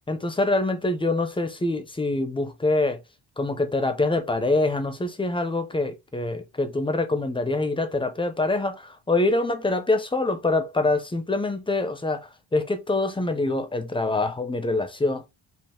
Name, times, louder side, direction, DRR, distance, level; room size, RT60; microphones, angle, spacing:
voice 1, 0.1-3.0 3.4-15.2, left 2 dB, 10° left, 0.5 m, -25 dB
5.5 x 2.4 x 3.5 m
wide cardioid pair, 170°, 47 cm